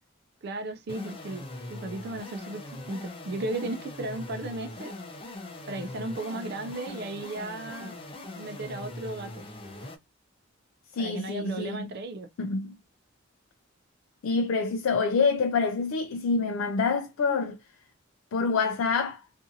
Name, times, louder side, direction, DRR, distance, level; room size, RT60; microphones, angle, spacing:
voice 1, 0.4-1.4 1.7-4.9 5.7-8.0 8.4-9.5 11.0-12.3, right 2 dB, 50° right, 0.4 m, -35 dB
sound 1, 0.9-10.0, left 2 dB, 25° left, 0.5 m, -41 dB
voice 2, 10.9-11.9 12.4-12.7 14.2-17.6 18.3-19.2, left 4 dB, 85° left, 0.4 m, -26 dB
2.6 x 2.4 x 2.6 m
head